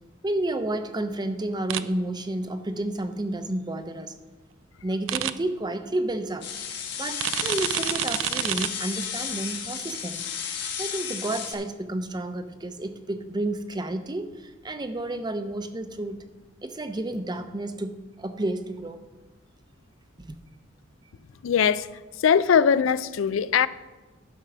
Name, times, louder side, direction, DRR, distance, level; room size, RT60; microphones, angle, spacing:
voice 1, 0.2-4.1 4.8-6.4 7.0-16.2 16.6-19.0 20.2-20.4, right 1 dB, 20° right, 0.6 m, -31 dB
sound 1, 1.7-1.8 5.1-5.3 7.2-8.7, right 12 dB, 80° right, 0.4 m, -27 dB
sound 2, 6.4-11.5, left 7 dB, 60° left, 1.3 m, -33 dB
voice 2, 21.4-21.9 22.2-23.7, left 7 dB, 85° left, 0.4 m, -20 dB
11.0 x 5.9 x 6.0 m
head